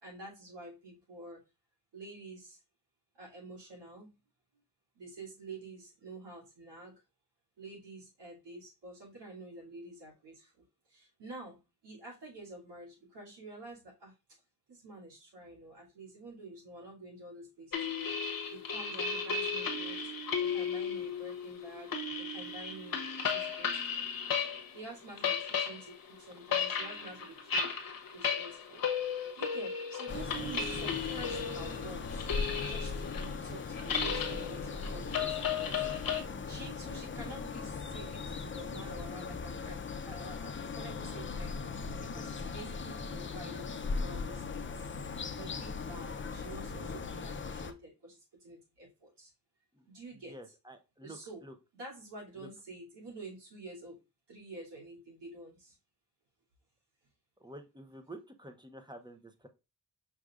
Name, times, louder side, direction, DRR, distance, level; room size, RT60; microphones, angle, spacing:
voice 1, 0.0-1.4 1.9-2.6 3.1-4.1 4.9-6.9 7.6-14.1 14.7-18.1 18.5-20.0 20.4-24.0 24.7-27.8 28.1-28.8 29.3-32.2 32.7-35.9 36.2-41.7 42.0-45.1 45.3-49.3 49.9-50.4 51.0-51.4 51.7-54.0 54.3-55.8, right 2 dB, 80° right, -4 dB, 2.7 m, -49 dB
sound 1, 17.7-24.8 25.0-36.2, left 6 dB, 55° left, 1.0 m, -35 dB
sound 2, 30.1-47.7, left 4 dB, 30° left, 0.6 m, -39 dB
voice 2, 49.7-51.5 52.4-52.5 57.4-59.5, right 1 dB, 10° right, 6 dB, 0.8 m, -50 dB
6.0 x 3.3 x 2.4 m, 0.27 s
cardioid pair, 55°, 41 cm